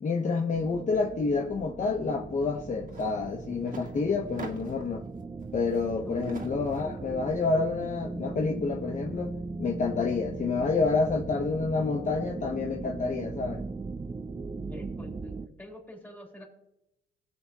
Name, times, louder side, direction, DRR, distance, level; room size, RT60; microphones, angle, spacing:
voice 1, 0.0-5.0 5.5-9.3 9.6-13.6, left 4 dB, 40° left, 1 dB, 1.0 m, -28 dB
sound 1, 0.5-15.5, right 3 dB, 15° right, 0.4 m, -38 dB
sound 2, 2.9-3.1 3.4-4.9 5.4-7.0, right 4 dB, 45° right, 1.9 m, -45 dB
voice 2, 14.7-16.4, left 1 dB, 10° left, -2 dB, 3.5 m, -46 dB
19.5 x 7.2 x 2.9 m, 0.87 s
cardioid pair, 90°, 20 cm